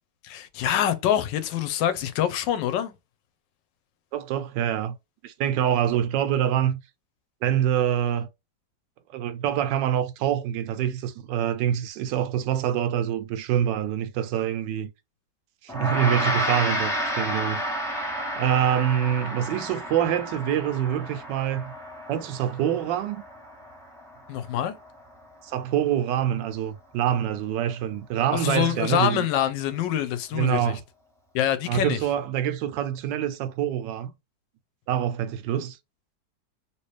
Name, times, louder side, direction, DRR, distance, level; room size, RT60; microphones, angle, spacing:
voice 1, 0.2-2.9 24.3-24.8 28.3-30.7 31.3-32.0, left 10 dB, 85° left, 1.3 m, -25 dB
voice 2, 4.1-4.9 5.2-6.8 7.4-8.3 9.1-14.9 15.6-17.6 18.4-21.7 22.1-23.2 25.4-29.3 30.3-30.8 31.7-34.1 34.9-35.8, right 10 dB, 85° right, 1.2 m, -25 dB
Gong, 15.7-25.2, equal, 5° left, 0.6 m, -31 dB
3.0 x 3.0 x 3.2 m
omnidirectional pair, 1.9 m